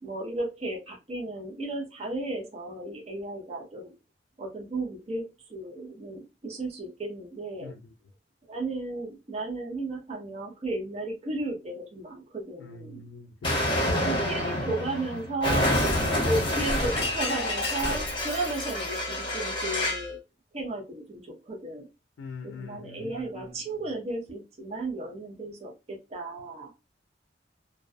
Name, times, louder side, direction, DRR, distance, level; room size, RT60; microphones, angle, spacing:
voice 1, 0.0-3.9 4.4-7.7 8.5-13.0 13.8-15.7 16.2-20.2 20.5-21.9 22.4-26.7, right 2 dB, 35° right, 0.6 m, -34 dB
voice 2, 12.6-13.9 22.2-23.1, left 4 dB, 80° left, 0.4 m, -43 dB
Explosion, 13.4-20.1, left 1 dB, 30° left, 1.0 m, -27 dB
2.3 x 2.2 x 2.4 m
head